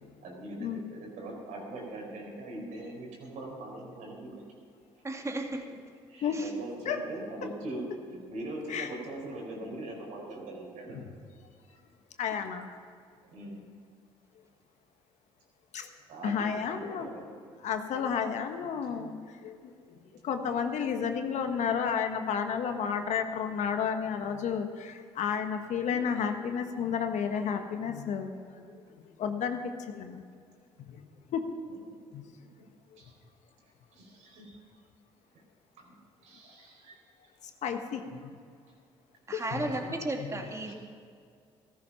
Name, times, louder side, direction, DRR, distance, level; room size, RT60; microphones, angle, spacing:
voice 1, 0.2-4.4 6.1-11.0 13.2-13.7 16.1-17.3 31.7-31.8 32.4-32.5 33.0-33.2 33.9-34.6 35.8-36.0 36.2-37.0 40.7-40.8, right 1 dB, 70° right, -1 dB, 4.5 m, -41 dB
voice 2, 5.0-5.6 6.4-6.5 39.3-40.7, right 2 dB, 20° right, 3 dB, 2.3 m, -34 dB
voice 3, 12.2-12.7 15.7-15.9 16.2-17.1 17.6-19.1 19.4-19.7 20.2-30.2 30.9-31.0 31.3-31.5 32.1-32.2 37.6-38.3 39.3-40.5, left 7 dB, 65° left, 6 dB, 1.4 m, -32 dB
14.5 x 14.0 x 5.8 m, 2.2 s
hypercardioid pair, 60°, 13 cm